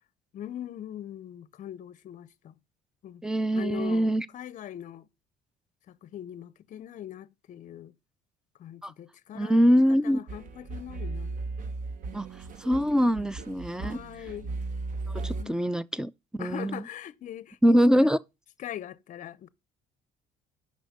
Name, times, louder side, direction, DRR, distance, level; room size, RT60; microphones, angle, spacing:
voice 1, 0.3-2.6 3.0-3.2 3.5-5.1 5.9-7.9 8.6-9.7 10.0-11.4 13.0-13.3 13.8-14.5 15.3-15.6 16.4-17.8 18.0-18.1 18.6-19.5, left 11 dB, 50° left, 0.6 m, -41 dB
voice 2, 3.2-4.3 8.8-8.9 9.3-10.2 12.1-12.3 12.6-14.0 15.2-16.1 16.4-16.8 17.6-18.2, equal, 5° right, 0.4 m, -23 dB
sound 1, 10.3-15.4, right 3 dB, 50° right, 0.9 m, -36 dB
6.4 x 5.4 x 6.5 m
cardioid pair, 110°, 17 cm